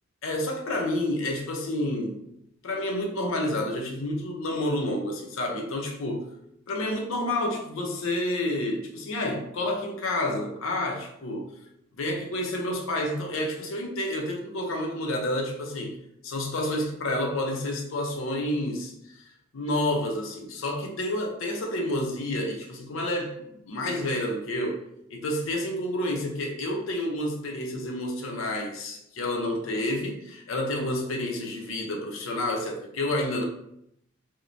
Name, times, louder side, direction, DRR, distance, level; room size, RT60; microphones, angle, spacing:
voice 1, 0.2-2.2 2.6-6.3 6.7-11.5 12.0-16.0 16.2-18.9 19.5-24.8 25.1-33.4, left 1 dB, 75° left, 0.5 m, -29 dB
3.1 x 2.1 x 2.5 m
head